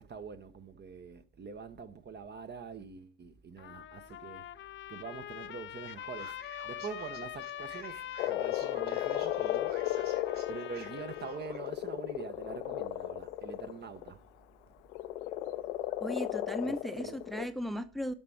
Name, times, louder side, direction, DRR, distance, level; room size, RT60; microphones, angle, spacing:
voice 1, 0.0-4.5 4.9-6.4 6.6-14.2 16.6-17.2, right 6 dB, 30° right, 0.9 m, -45 dB
Trumpet, 3.6-11.5, left 12 dB, 35° left, 0.6 m, -44 dB
Male speech man speaking, 5.9-11.7, right 5 dB, 60° right, 4.2 m, -53 dB
Frog, 8.2-14.1 14.9-17.5, left 14 dB, 70° left, 0.7 m, -35 dB
voice 2, 16.0-18.1, equal, ahead, 0.8 m, -36 dB
12.5 x 5.9 x 4.7 m
figure-of-eight pair, 55°, 36 cm